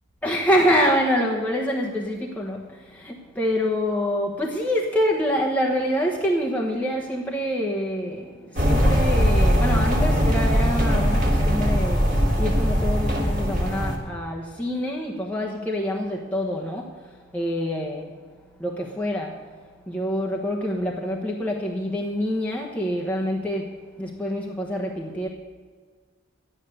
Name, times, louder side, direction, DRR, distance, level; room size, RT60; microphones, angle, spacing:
voice 1, 0.2-18.1 18.6-19.5 19.9-25.3, equal, 10° left, -2 dB, 1.1 m, -26 dB
sound 1, 8.6-14.0, equal, 40° right, 2.6 m, -20 dB
12.5 x 9.9 x 6.7 m, 1.5 s
head